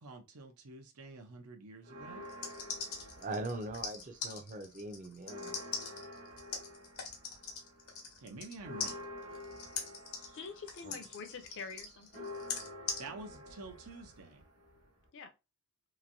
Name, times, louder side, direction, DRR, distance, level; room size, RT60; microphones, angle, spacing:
voice 1, 0.0-2.3 8.2-9.1 13.0-14.4, right 3 dB, 85° right, 0.7 m, -48 dB
sound 1, 1.8-4.2 4.6-15.1, left 1 dB, 55° right, 1.2 m, -49 dB
sound 2, 2.2-8.5 8.8-13.0, left 5 dB, 80° left, 0.9 m, -41 dB
voice 2, 3.2-5.6 10.8-11.0, right 2 dB, 35° right, 0.5 m, -41 dB
voice 3, 10.3-12.3 15.1-15.3, left 5 dB, 55° left, 0.5 m, -46 dB
3.0 x 2.6 x 2.6 m
head